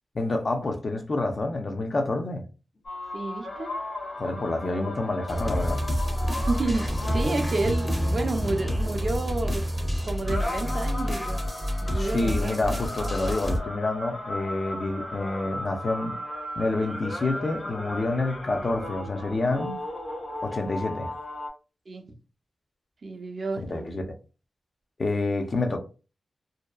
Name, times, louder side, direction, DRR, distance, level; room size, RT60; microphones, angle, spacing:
voice 1, 0.1-2.4 4.2-5.8 11.9-16.1 16.6-19.8 20.4-21.1 23.6-24.2 25.0-25.8, left 2 dB, 45° left, 0.5 m, -28 dB
sound 1, 2.8-21.5, left 1 dB, 75° left, 1.0 m, -37 dB
voice 2, 3.1-3.7 4.6-4.9 6.5-9.6 10.1-11.4 11.8-12.5 21.9-22.0 23.0-23.9, right 2 dB, 50° right, 0.5 m, -30 dB
sound 2, 5.3-13.6, equal, 5° left, 0.6 m, -28 dB
2.7 x 2.2 x 2.3 m
wide cardioid pair, 90°, 0 cm